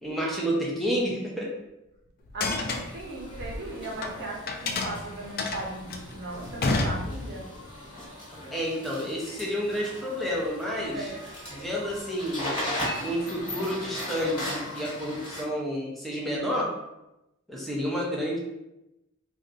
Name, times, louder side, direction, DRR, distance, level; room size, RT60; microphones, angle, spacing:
voice 1, 0.0-1.5 8.5-11.1 11.5-12.5 13.0-16.7 17.5-18.4, equal, ahead, -4 dB, 0.6 m, -30 dB
sound 1, 2.3-4.1 4.5-7.5, left 3 dB, 45° left, 0.4 m, -30 dB
voice 2, 2.3-7.5 10.8-11.2, right 2 dB, 55° right, -1 dB, 0.7 m, -37 dB
Grocery store cash register, 2.5-15.4, left 1 dB, 25° left, 1.2 m, -38 dB
2.5 x 2.2 x 3.8 m, 0.92 s
head